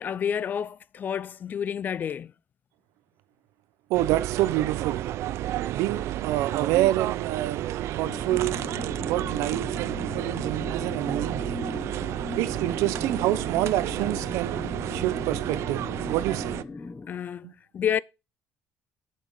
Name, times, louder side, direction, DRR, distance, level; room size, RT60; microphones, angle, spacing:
voice 1, 0.0-2.3 17.1-18.0, left 8 dB, 40° left, 0.4 m, -29 dB
sound 1, 3.9-16.6, right 13 dB, 65° right, 0.5 m, -31 dB
voice 2, 3.9-5.0 5.7-7.6 7.9-8.6 9.0-11.6 12.4-14.6 14.9-16.6 17.4-17.5, right 15 dB, 80° right, 0.9 m, -27 dB
sound 2, 8.0-17.1, left 3 dB, 20° left, 1.0 m, -38 dB
7.5 x 7.3 x 5.6 m
cardioid pair, 120°, 5 cm